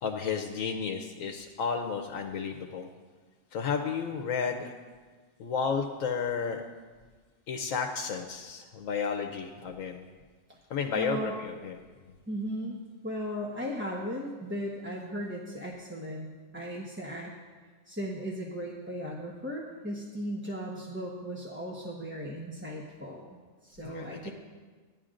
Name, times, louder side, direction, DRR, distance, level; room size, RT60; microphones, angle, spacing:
voice 1, 0.0-2.9 3.5-4.7 5.4-6.6 7.5-10.0 10.7-11.8 23.8-24.3, left 6 dB, 80° left, 4 dB, 1.1 m, -32 dB
voice 2, 10.9-11.3 12.3-17.3 17.9-24.3, equal, 10° right, -3 dB, 0.9 m, -37 dB
16.0 x 11.0 x 2.5 m, 1.4 s
omnidirectional pair, 1.4 m